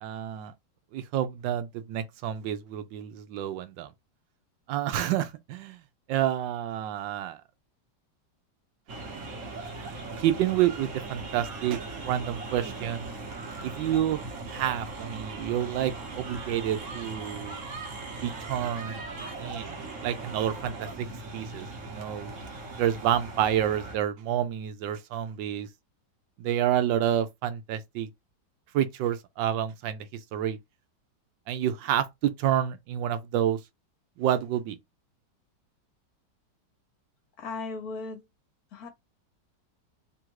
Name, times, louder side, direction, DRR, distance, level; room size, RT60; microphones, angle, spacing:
voice 1, 0.0-0.5 0.9-3.9 4.7-5.8 6.1-7.4 10.2-13.1 13.6-14.2 14.5-17.6 18.2-21.1 21.3-22.3 22.8-25.7 26.4-28.1 28.7-30.6 31.5-33.6 34.2-34.8, right 11 dB, 85° right, 1.3 m, -29 dB
sound 1, 8.9-24.0, right 3 dB, 50° right, 1.2 m, -39 dB
voice 2, 37.4-38.2 38.7-38.9, left 3 dB, 60° left, 1.3 m, -36 dB
3.4 x 2.5 x 4.5 m
omnidirectional pair, 2.0 m